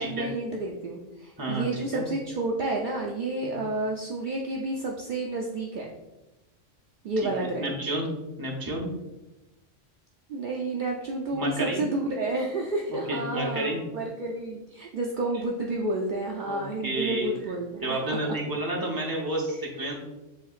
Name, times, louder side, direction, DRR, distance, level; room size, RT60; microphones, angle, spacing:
voice 1, 0.0-5.9 7.0-7.7 10.3-18.0 19.5-19.6, right 2 dB, 65° right, 0 dB, 0.5 m, -30 dB
voice 2, 1.4-2.1 3.4-3.5 7.4-8.1 8.4-8.8 11.3-11.8 12.9-13.8 16.4-17.3 17.8-19.9, right 1 dB, 20° right, -1 dB, 0.7 m, -31 dB
7.3 x 2.8 x 2.4 m, 1.0 s
omnidirectional pair, 1.3 m